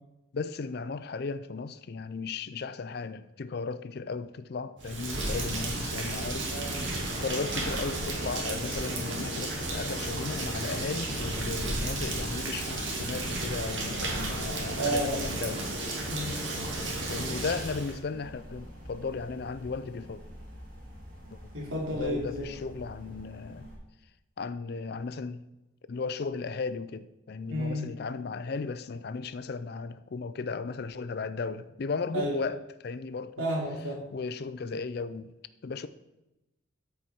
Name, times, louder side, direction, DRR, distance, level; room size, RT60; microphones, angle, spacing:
voice 1, 0.3-15.7 17.1-20.2 21.3-21.4 21.9-23.7 24.4-25.4 25.9-33.3 34.1-35.3 35.6-35.9, left 4 dB, 50° left, 0.4 m, -35 dB
Rain, 4.8-18.0, right 2 dB, 65° right, 1.9 m, -33 dB
sound 1, 5.4-23.8, equal, 40° right, 2.5 m, -46 dB
voice 2, 6.5-6.8 14.8-15.3 16.1-16.4 21.5-22.5 27.5-27.9 32.1-32.4 33.4-34.0, equal, 85° right, 3.1 m, -31 dB
13.0 x 4.7 x 4.3 m
head